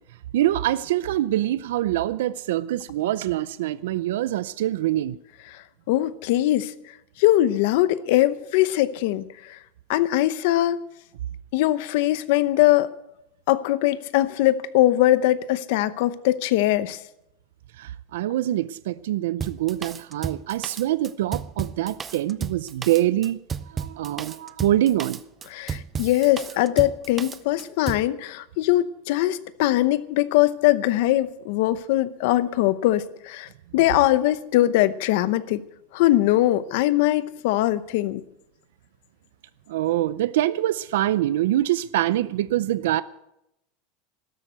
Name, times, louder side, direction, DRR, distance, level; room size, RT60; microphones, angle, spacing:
voice 1, 0.3-5.2 17.8-23.4 23.7-25.2 39.7-43.0, right 14 dB, 90° right, 16 dB, 0.5 m, -24 dB
voice 2, 5.9-6.7 7.2-9.2 9.9-10.8 11.5-12.9 13.5-17.0 25.5-33.5 33.7-35.6 35.9-38.2, left 15 dB, 65° left, 15 dB, 0.8 m, -21 dB
Drum kit, 19.4-28.1, right 6 dB, 20° right, 0.5 m, -33 dB
13.0 x 12.0 x 8.1 m, 0.85 s
supercardioid pair, 160°, 0 cm